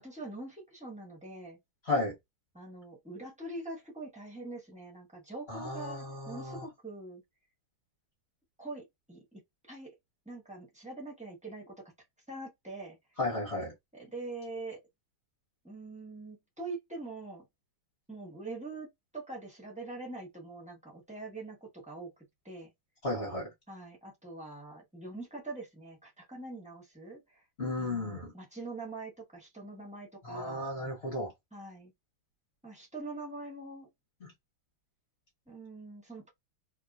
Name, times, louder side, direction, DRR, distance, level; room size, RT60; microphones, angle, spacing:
voice 1, 0.0-1.6 2.5-7.2 8.6-9.4 9.7-9.9 10.2-11.9 12.3-13.0 13.9-14.8 15.6-17.4 18.1-22.1 22.4-22.7 23.7-27.4 27.8-30.6 31.5-31.9 32.6-33.9 35.5-36.3, right 2 dB, 10° right, 0.5 m, -44 dB
voice 2, 5.5-6.6 13.2-13.7 23.0-23.5 27.6-28.3 30.2-31.3 34.2-34.3, left 2 dB, 40° left, 1.1 m, -34 dB
3.2 x 2.6 x 2.4 m
omnidirectional pair, 2.4 m